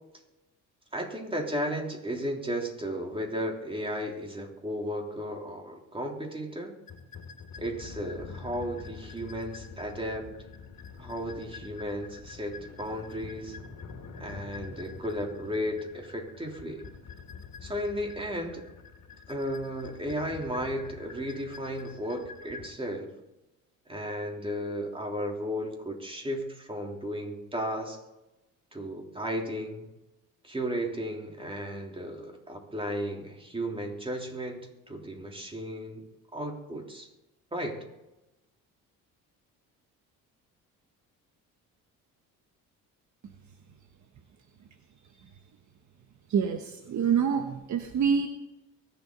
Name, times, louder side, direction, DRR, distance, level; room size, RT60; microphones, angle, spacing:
voice 1, 0.9-6.7 7.6-10.3 11.0-13.6 14.2-16.8 17.6-18.7 19.3-23.1 23.9-28.0 28.7-29.9 30.4-36.0 36.3-37.1 37.5-37.8, equal, 15° right, 1 dB, 3.4 m, -34 dB
sound 1, 6.9-22.7, left 5 dB, 50° left, 2.4 m, -46 dB
voice 2, 46.3-48.3, right 7 dB, 50° right, 5 dB, 1.3 m, -26 dB
23.5 x 8.0 x 4.0 m, 0.98 s
supercardioid pair, 80°, 35 cm